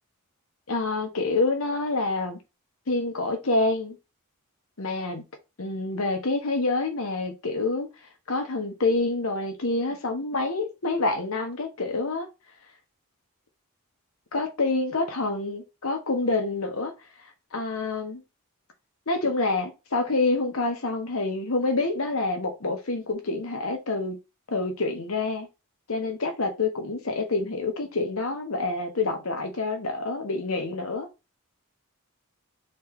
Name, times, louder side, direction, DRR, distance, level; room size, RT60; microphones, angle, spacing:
voice 1, 0.7-2.4 2.9-4.0 4.8-5.2 5.6-7.9 8.3-12.3 14.3-16.9 17.5-18.2 19.1-24.2 24.5-25.5 25.9-31.1, left 3 dB, 70° left, 1.1 m, -27 dB
4.3 x 3.2 x 3.5 m
head